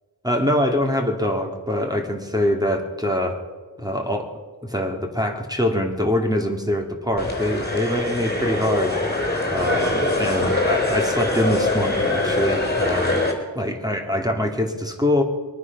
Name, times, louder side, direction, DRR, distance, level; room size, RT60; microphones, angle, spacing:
voice 1, 0.2-3.4 3.8-4.3 4.6-8.9 9.5-13.3 13.5-15.2, left 1 dB, 10° right, 3 dB, 2.4 m, -24 dB
sound 1, 7.2-13.3, left 2 dB, 20° left, 3.8 m, -23 dB
22.5 x 9.6 x 6.1 m, 1.4 s
wide cardioid pair, 55°, 44 cm